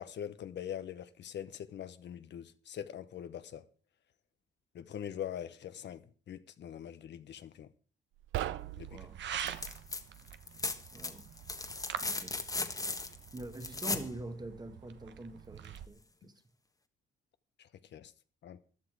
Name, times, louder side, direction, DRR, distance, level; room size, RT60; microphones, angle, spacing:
voice 1, 0.0-3.6 4.7-6.0 6.3-7.7 8.8-9.0 9.4-9.5 17.9-18.1 18.4-18.6, left 9 dB, 65° left, 1.0 m, -43 dB
sound 1, 8.2-9.8, right 14 dB, 90° right, 0.7 m, -39 dB
sound 2, 8.6-15.9, right 9 dB, 65° right, 1.1 m, -45 dB
voice 2, 8.9-9.2 10.9-11.3 12.0-12.4 13.3-16.3, right 2 dB, 20° right, 1.6 m, -45 dB
sound 3, 9.4-10.0 10.3-14.1 15.8-15.9, left 3 dB, 15° left, 1.4 m, -37 dB
15.0 x 11.0 x 4.9 m
cardioid pair, 90°, 20 cm